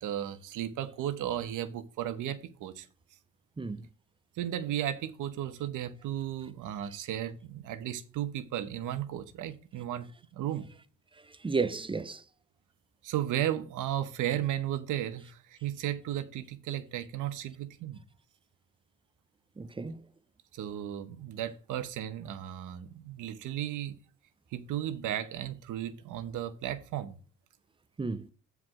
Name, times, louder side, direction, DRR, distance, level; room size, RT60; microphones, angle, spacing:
voice 1, 0.0-2.9 4.4-10.1 10.3-10.7 13.0-18.0 20.5-24.0 24.5-27.2, right 11 dB, 85° right, 1.0 m, -34 dB
voice 2, 11.3-12.2 19.6-20.0 28.0-28.3, right 4 dB, 15° right, 0.6 m, -33 dB
7.8 x 4.7 x 5.9 m
cardioid pair, 90°, 30 cm